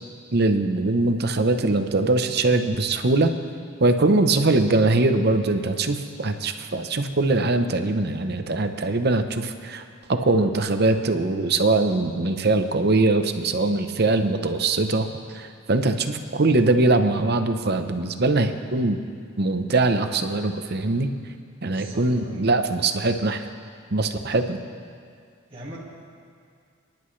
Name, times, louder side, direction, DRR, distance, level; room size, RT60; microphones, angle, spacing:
voice 1, 0.3-3.3 3.8-9.8 10.1-15.1 15.3-19.0 19.4-21.1 21.6-23.4 23.9-24.6, right 2 dB, 50° right, 7 dB, 0.8 m, -22 dB
voice 2, 21.6-22.5 25.5-25.8, right 1 dB, 25° right, -6 dB, 2.0 m, -40 dB
28.5 x 10.5 x 3.3 m, 2.2 s
head